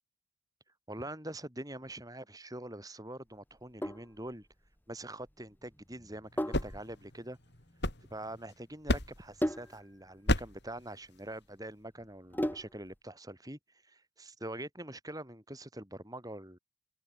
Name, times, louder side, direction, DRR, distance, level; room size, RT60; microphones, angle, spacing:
voice 1, 0.9-4.5 4.9-7.4 8.1-16.6, right 1 dB, 15° right, 7.5 m, -44 dB
Sink (filling or washing), 3.5-13.0, equal, 10° left, 7.2 m, -40 dB
sound 1, 6.2-8.5 8.9-9.4 10.3-10.7, left 1 dB, 55° left, 6.1 m, -33 dB
head